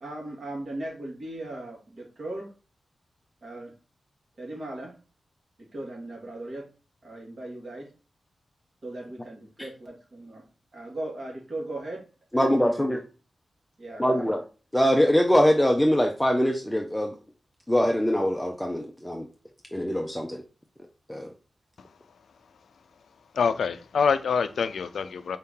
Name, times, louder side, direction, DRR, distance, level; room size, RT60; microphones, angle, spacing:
voice 1, 0.0-2.5 3.4-3.7 4.4-4.9 5.7-6.7 7.0-7.9 8.8-10.4 10.7-12.0 12.3-12.9 13.8-14.3, right 1 dB, 55° right, 1.8 m, -38 dB
voice 2, 12.3-13.0 14.0-14.4 14.7-17.1 17.7-19.3 19.7-20.4 21.1-21.3, equal, 5° left, 0.5 m, -23 dB
voice 3, 23.3-25.4, left 6 dB, 90° left, 0.3 m, -25 dB
4.5 x 2.7 x 3.6 m
cardioid pair, 75°, 0 cm